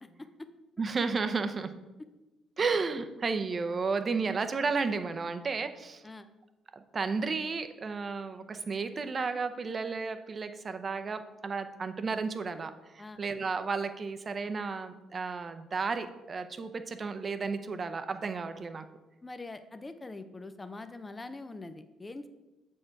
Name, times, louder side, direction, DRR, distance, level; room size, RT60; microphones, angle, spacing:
voice 1, 0.2-0.5 6.0-6.3 13.0-13.2 19.2-22.3, left 2 dB, 25° left, 10 dB, 0.6 m, -43 dB
voice 2, 0.8-1.7 2.6-6.0 6.7-18.8, right 4 dB, 40° right, 9 dB, 0.6 m, -33 dB
7.4 x 4.4 x 4.6 m, 1.1 s
hypercardioid pair, 55°, 0 cm